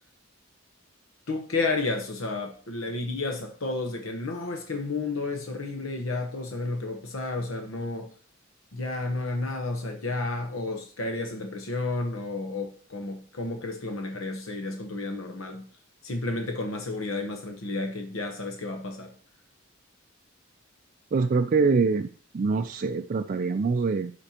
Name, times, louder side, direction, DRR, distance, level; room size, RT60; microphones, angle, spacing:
voice 1, 1.3-8.1 8.7-15.6 16.0-19.1, left 3 dB, 80° left, 1.0 m, -31 dB
voice 2, 21.1-24.1, right 4 dB, 40° right, 0.3 m, -24 dB
12.0 x 4.4 x 2.9 m
head